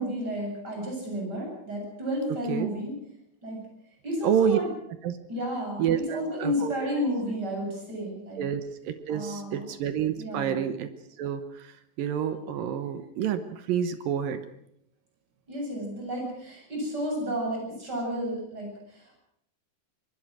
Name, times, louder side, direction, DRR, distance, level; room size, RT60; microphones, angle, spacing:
voice 1, 0.0-2.9 3.4-3.6 4.0-4.7 5.3-5.8 6.1-8.4 9.1-9.7 10.2-10.6 15.5-19.2, equal, 20° right, 0 dB, 8.2 m, -32 dB
voice 2, 4.2-4.6 5.0-5.2 5.8-6.9 8.4-10.9 11.2-14.4, right 9 dB, 75° right, 10 dB, 2.1 m, -28 dB
23.5 x 21.0 x 6.3 m, 0.72 s
omnidirectional pair, 5.5 m